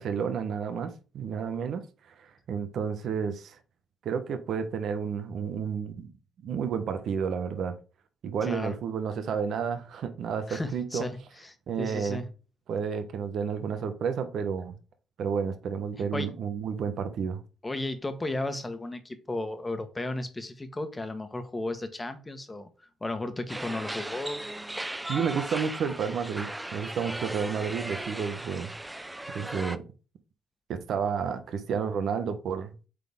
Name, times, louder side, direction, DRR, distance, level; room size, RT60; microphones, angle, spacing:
voice 1, 0.0-1.9 2.2-3.6 4.0-6.1 6.4-7.8 8.2-11.1 11.7-12.2 12.7-14.8 15.2-17.4 25.1-28.7 29.3-29.8 30.7-32.7, right 6 dB, 70° right, 1.0 m, -31 dB
voice 2, 8.4-8.8 10.5-12.3 16.1-16.3 17.6-22.7 23.0-24.4, left 2 dB, 20° left, 1.3 m, -34 dB
sound 1, 23.5-29.8, right 1 dB, 10° right, 0.5 m, -37 dB
8.2 x 4.1 x 3.6 m
cardioid pair, 90°, 0 cm